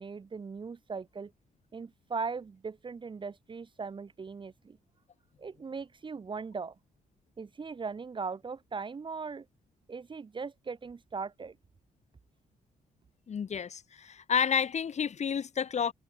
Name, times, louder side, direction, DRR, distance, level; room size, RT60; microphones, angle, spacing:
voice 1, 0.0-1.3 1.7-4.8 5.4-6.8 7.4-9.5 9.9-11.6, right 5 dB, 35° right, 0.8 m, -39 dB
voice 2, 13.3-15.9, left 7 dB, 55° left, 1.4 m, -30 dB
supercardioid pair, 60°, 14 cm